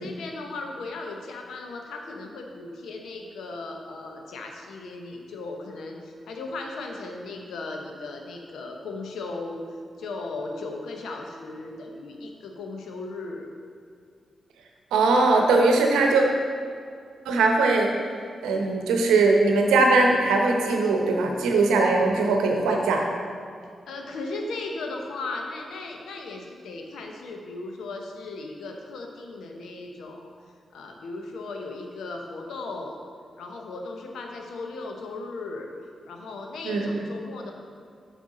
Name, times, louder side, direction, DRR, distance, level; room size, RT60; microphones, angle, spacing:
voice 1, 0.0-9.6 10.0-13.5 23.9-30.3 30.7-33.0 33.4-35.7 36.1-37.5, left 3 dB, 75° left, 2 dB, 0.8 m, -36 dB
voice 2, 14.9-16.2 17.2-17.9 18.4-23.0 36.6-37.0, right 3 dB, 85° right, 2 dB, 0.8 m, -20 dB
7.3 x 5.5 x 3.8 m, 2.3 s
hypercardioid pair, 40°, 0 cm